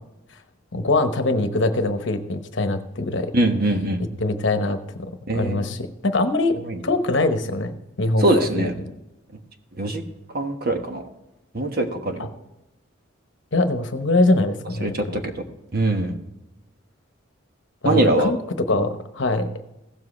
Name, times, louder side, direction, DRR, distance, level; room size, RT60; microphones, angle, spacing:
voice 1, 0.7-3.3 4.2-5.1 5.3-8.7 13.5-15.0 17.8-18.4 18.7-19.5, left 2 dB, 60° left, 8 dB, 1.0 m, -23 dB
voice 2, 3.3-4.1 5.3-5.8 6.7-6.8 8.2-8.7 9.8-10.0 10.3-11.0 11.5-12.3 14.8-15.2 15.7-16.2 17.8-18.3, right 1 dB, 45° right, 5 dB, 1.3 m, -22 dB
16.0 x 7.5 x 3.2 m, 0.93 s
head